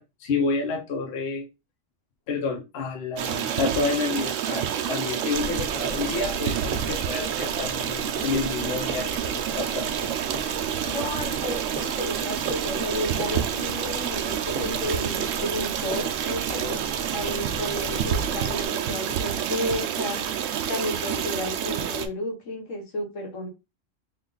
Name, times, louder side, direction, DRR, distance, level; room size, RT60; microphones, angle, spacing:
voice 1, 0.0-1.5 2.3-10.1, left 4 dB, 60° left, 1.0 m, -29 dB
Stream, 3.2-22.1, right 9 dB, 85° right, 1.0 m, -28 dB
sound 1, 5.3-18.7, right 2 dB, 50° right, 1.1 m, -38 dB
voice 2, 10.8-16.8 17.1-20.2 20.7-23.5, left 1 dB, 80° left, 1.6 m, -32 dB
3.7 x 2.4 x 3.8 m
omnidirectional pair, 1.3 m